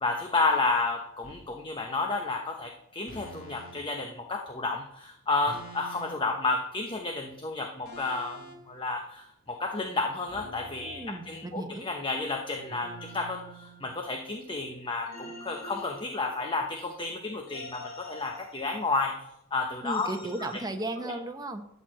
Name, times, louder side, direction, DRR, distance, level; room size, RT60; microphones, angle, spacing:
voice 1, 0.0-19.1 19.5-20.1 21.0-21.1, left 3 dB, 20° left, 3 dB, 0.8 m, -31 dB
sound 1, 1.2-1.5 3.1-3.8 5.5-6.3 7.8-8.6 10.3-11.7 12.7-14.3 15.1-16.7 17.5-19.0 19.9-20.6, equal, 40° left, 2.2 m, -46 dB
voice 2, 10.8-11.9 19.8-21.7, right 1 dB, 15° right, 5 dB, 1.0 m, -35 dB
13.0 x 4.5 x 7.5 m, 0.79 s
head